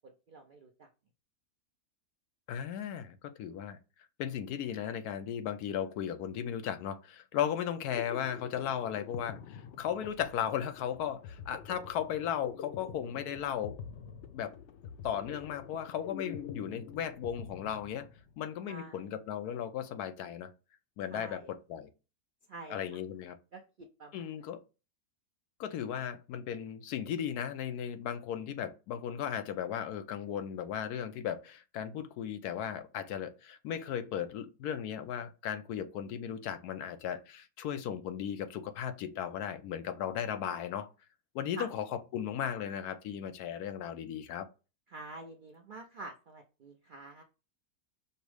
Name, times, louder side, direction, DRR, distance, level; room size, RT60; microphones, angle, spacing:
voice 1, 0.0-0.9 18.7-19.0 21.1-21.5 22.5-22.8 23.5-24.3 41.6-41.7 44.9-47.2, right 2 dB, 70° right, 0.4 m, -47 dB
voice 2, 2.5-3.8 4.2-13.8 14.3-14.5 15.0-18.1 18.4-20.5 21.0-21.9 22.7-23.4 24.1-24.6 25.6-40.9 41.3-44.5, left 9 dB, 90° left, 1.2 m, -36 dB
sound 1, 7.9-18.5, left 7 dB, 70° left, 0.6 m, -46 dB
5.4 x 2.0 x 4.7 m
omnidirectional pair, 1.6 m